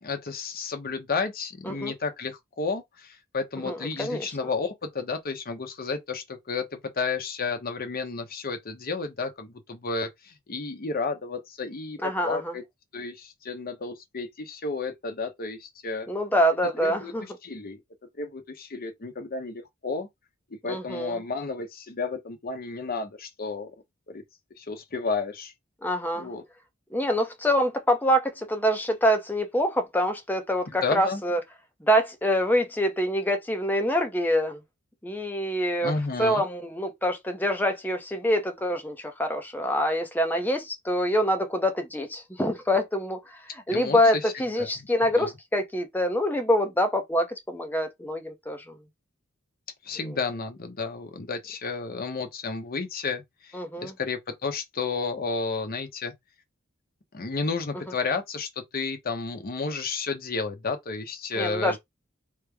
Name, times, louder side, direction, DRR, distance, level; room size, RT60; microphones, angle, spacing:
voice 1, 0.0-12.6 12.9-16.1 16.6-17.8 18.2-20.1 20.6-23.7 24.1-24.2 24.6-25.5 26.2-26.4 30.7-31.2 35.8-36.4 43.7-44.9 45.1-45.3 49.8-56.1 57.1-61.8, left 4 dB, 45° left, 0.8 m, -32 dB
voice 2, 3.6-4.3 12.0-12.5 16.1-17.2 20.7-21.2 25.8-26.3 26.9-31.4 31.8-34.6 35.0-35.9 36.2-48.7 53.5-53.9 61.3-61.8, equal, 10° left, 0.6 m, -25 dB
3.2 x 2.1 x 3.3 m
head